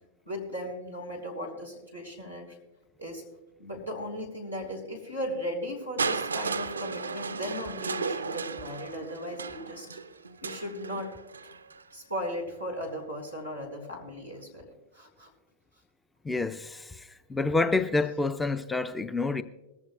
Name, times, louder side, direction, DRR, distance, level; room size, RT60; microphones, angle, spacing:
voice 1, 0.3-2.5 3.0-3.2 3.6-9.9 10.4-11.1 11.9-14.7 14.9-15.3, equal, 90° left, 4.2 m, -37 dB
Crushing, 6.0-11.9 12.8-12.9, right 5 dB, 75° right, 0.5 m, -35 dB
voice 2, 16.3-17.0 17.3-19.4, left 3 dB, 10° left, 0.5 m, -28 dB
21.0 x 14.5 x 2.3 m
figure-of-eight pair, 90°, 0 cm